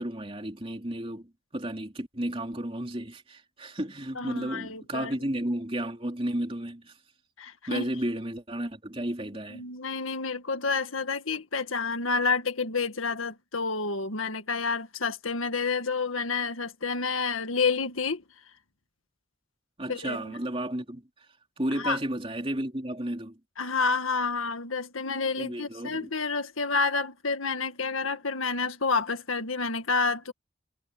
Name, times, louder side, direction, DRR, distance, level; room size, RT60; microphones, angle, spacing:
voice 1, 0.0-7.0 7.7-9.6 19.8-21.1 21.6-23.4 25.4-26.1, right 1 dB, 25° right, 3.4 m, -33 dB
voice 2, 4.2-5.1 7.4-7.9 9.5-18.2 19.9-20.3 21.8-22.0 23.6-30.3, left 4 dB, 85° left, 1.9 m, -29 dB
head